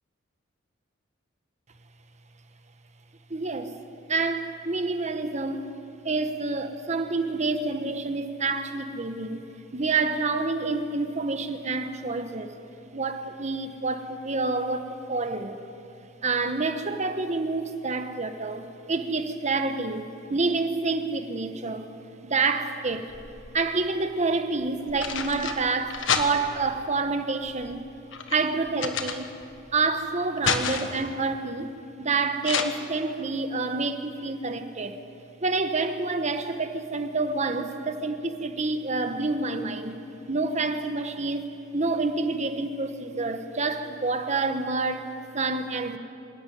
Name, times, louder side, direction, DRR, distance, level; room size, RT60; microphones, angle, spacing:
voice 1, 3.3-3.7 4.1-5.7 6.0-9.5 9.7-12.5 12.9-15.6 16.2-21.9 22.2-23.1 23.5-27.8 28.3-29.3 29.7-35.0 35.4-40.0 40.3-41.5 41.7-46.0, right 3 dB, 35° right, 7 dB, 1.3 m, -28 dB
sound 1, 22.9-23.7 24.6-26.7 27.4-29.7 30.0-31.1 32.4-32.6, left 6 dB, 80° left, 1.4 m, -30 dB
26.0 x 13.0 x 9.4 m, 2.6 s
head